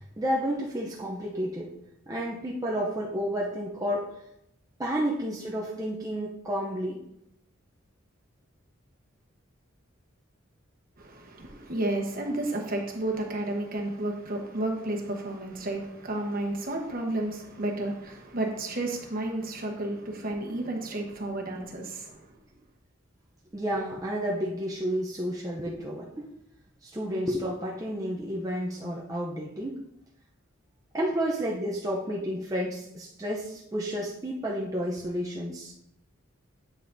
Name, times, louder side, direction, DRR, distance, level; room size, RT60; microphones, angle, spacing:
voice 1, 0.0-1.7 2.1-4.2 4.8-7.0 11.4-11.6 23.5-26.3 26.8-29.8 30.9-35.7, equal, 15° right, -3 dB, 0.6 m, -31 dB
voice 2, 11.0-22.2, right 1 dB, 45° right, 1 dB, 1.1 m, -32 dB
8.4 x 5.7 x 2.6 m, 0.80 s
head